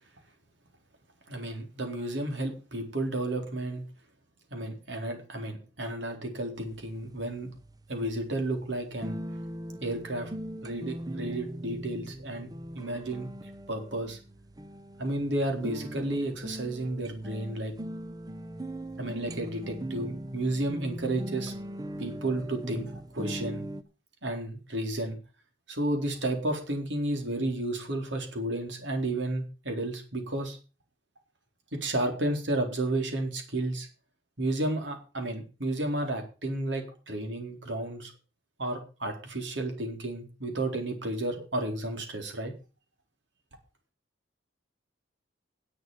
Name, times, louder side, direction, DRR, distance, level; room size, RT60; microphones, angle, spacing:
voice 1, 1.3-3.8 4.5-7.5 7.9-9.1 9.8-10.3 10.6-12.5 12.7-14.2 15.0-17.7 19.0-21.5 22.0-23.6 24.2-25.2 25.7-30.6 31.7-33.9 34.4-38.1 38.6-42.5, right 1 dB, 80° right, 4 dB, 4.1 m, -32 dB
sound 1, 6.6-23.8, right 1 dB, 20° right, 0.8 m, -40 dB
11.0 x 7.9 x 7.4 m, 0.33 s
head